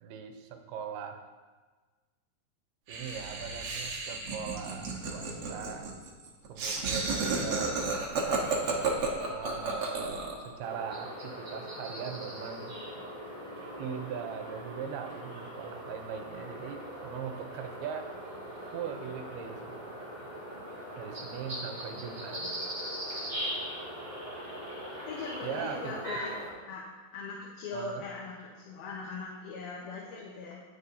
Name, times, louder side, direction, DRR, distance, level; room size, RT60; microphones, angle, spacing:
voice 1, 0.0-1.2 2.9-5.9 6.5-7.8 9.3-10.1 10.4-12.7 13.8-18.1 18.7-20.0 21.0-22.5 22.8-22.9 25.4-25.9 27.7-28.0, right 7 dB, 85° right, 6 dB, 2.7 m, -40 dB
Laughter, 2.9-10.5, right 4 dB, 70° right, 1.3 m, -32 dB
sound 1, 10.6-26.5, equal, 25° right, 2.5 m, -40 dB
voice 2, 25.1-26.4 26.6-26.8 27.1-30.6, left 4 dB, 75° left, -4 dB, 2.9 m, -40 dB
18.0 x 6.7 x 2.8 m, 1.4 s
omnidirectional pair, 4.5 m